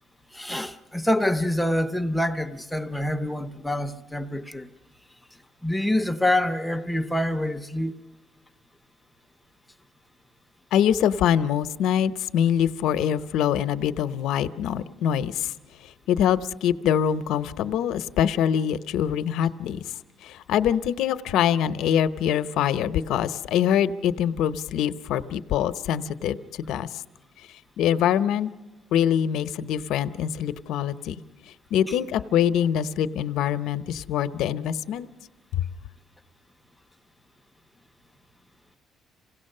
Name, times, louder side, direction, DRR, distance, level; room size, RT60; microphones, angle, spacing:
voice 1, 0.3-4.7 5.6-8.0 31.9-32.0, left 1 dB, ahead, 0.6 m, -26 dB
voice 2, 10.7-15.5 15.8-19.8 20.2-27.0 27.8-28.5 28.9-31.2 31.7-35.1, left 9 dB, 70° left, 0.7 m, -24 dB
27.5 x 17.0 x 6.6 m
cardioid pair, 175°, 0 cm